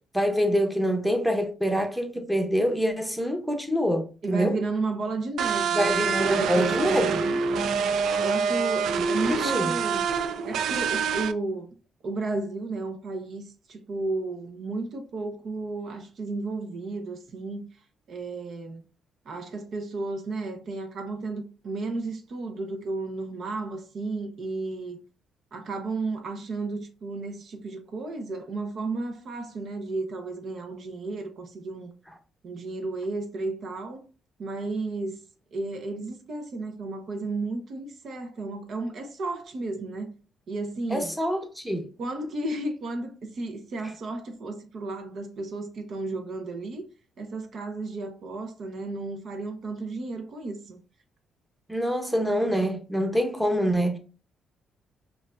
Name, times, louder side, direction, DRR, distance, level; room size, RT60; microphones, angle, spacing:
voice 1, 0.1-4.5 5.7-7.1 9.3-9.7 40.9-41.9 51.7-54.0, equal, ahead, 0.9 m, -25 dB
voice 2, 4.2-7.4 8.2-10.0 10.5-11.7 12.0-13.4 13.7-17.7 18.1-18.8 19.2-25.0 25.5-31.9 32.4-34.0 34.4-35.2 35.5-40.1 40.5-41.1 42.0-46.8 47.2-50.8, right 3 dB, 60° right, 0.8 m, -33 dB
sound 1, 5.4-11.3, right 6 dB, 75° right, 0.3 m, -26 dB
5.2 x 2.6 x 2.4 m
cardioid pair, 90°, 0 cm